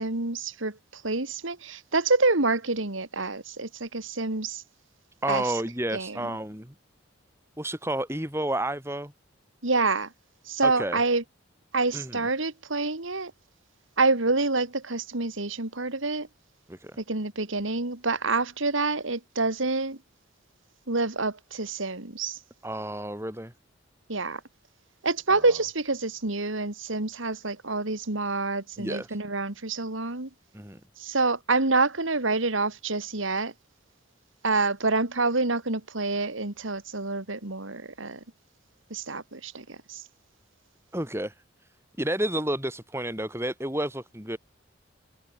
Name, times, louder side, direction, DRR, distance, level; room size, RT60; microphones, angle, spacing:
voice 1, 0.0-4.6 5.3-5.4 5.9-6.2 9.6-10.1 10.5-11.2 11.7-13.3 14.0-16.3 17.0-20.0 20.9-22.4 24.1-24.4 25.0-30.3 31.0-33.5 34.4-38.2 38.9-40.0, right 3 dB, 75° right, 2.5 m, -27 dB
voice 2, 5.2-6.7 7.6-9.1 10.6-11.0 11.9-12.3 16.7-17.0 22.6-23.5 25.3-25.4 28.8-29.2 30.5-30.8 40.9-41.4 42.0-44.4, right 1 dB, 10° right, 6.8 m, -31 dB
head